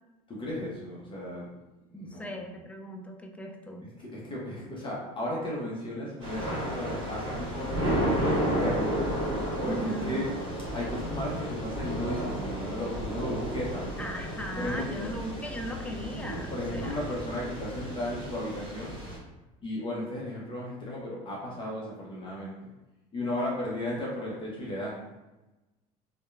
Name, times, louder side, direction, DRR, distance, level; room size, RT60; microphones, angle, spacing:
voice 1, 0.3-1.5 1.9-2.6 4.0-9.0 9.6-10.3 10.7-13.9 14.6-15.1 16.5-19.0 19.6-22.6 23.1-25.0, left 1 dB, 30° left, -5 dB, 0.7 m, -35 dB
voice 2, 1.9-3.9 9.6-10.2 14.0-17.0, equal, 5° left, 3 dB, 0.3 m, -38 dB
Thunder / Rain, 6.2-19.2, equal, 30° right, 1.3 m, -32 dB
2.7 x 2.2 x 2.4 m, 1.0 s
hypercardioid pair, 85°, 18 cm